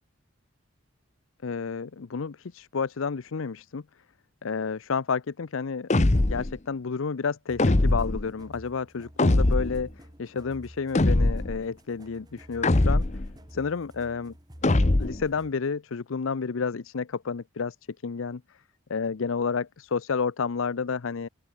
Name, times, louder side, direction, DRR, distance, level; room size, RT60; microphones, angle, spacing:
voice 1, 1.4-3.8 4.4-5.9 6.2-9.9 10.2-13.1 13.5-14.3 15.0-17.8 18.0-18.4 18.9-21.3, left 5 dB, 85° left, 0.6 m, -30 dB
sound 1, 5.9-6.5 7.6-8.3 9.2-9.8 10.9-11.6 12.6-13.3 14.6-15.3, left 2 dB, 35° left, 0.8 m, -22 dB
sound 2, 7.5-15.7, equal, 20° right, 4.0 m, -50 dB
open air
head